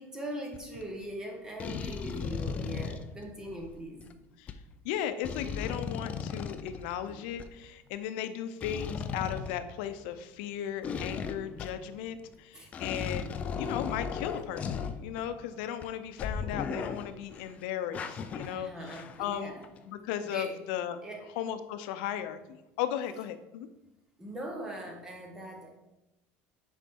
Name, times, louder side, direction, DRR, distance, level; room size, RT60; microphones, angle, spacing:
voice 1, 0.0-4.1 6.7-6.8 7.1-7.2 12.5-12.7 18.4-19.7 20.2-20.6 21.0-21.3 23.0-23.1 24.2-25.8, right 1 dB, 10° right, 1 dB, 0.9 m, -41 dB
sound 1, 0.5-0.8 1.6-4.1 4.5-4.6 5.2-7.5 8.6-10.2 10.8-11.9 12.3-12.4 12.7-15.4 15.8-15.9 16.2-17.5 17.9-19.4 19.6-19.8, left 6 dB, 25° left, 0.4 m, -37 dB
voice 2, 4.8-13.3 13.6-19.5 19.9-21.0 21.4-23.7, left 10 dB, 75° left, 10 dB, 0.6 m, -36 dB
7.2 x 5.1 x 3.6 m, 0.95 s
cardioid pair, 170°, 5 cm